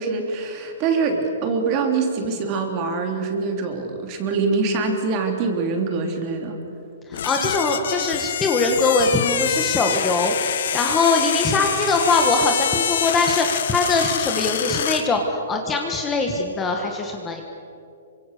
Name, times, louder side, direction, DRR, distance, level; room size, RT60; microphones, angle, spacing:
voice 1, 0.0-6.6, right 4 dB, 25° right, 3 dB, 3.1 m, -24 dB
sound 1, 7.1-15.1, left 9 dB, 55° left, 1.3 m, -26 dB
voice 2, 7.1-17.4, left 3 dB, 10° left, 2 dB, 1.5 m, -22 dB
27.0 x 25.0 x 6.8 m, 2.7 s
hypercardioid pair, 170°, 0 cm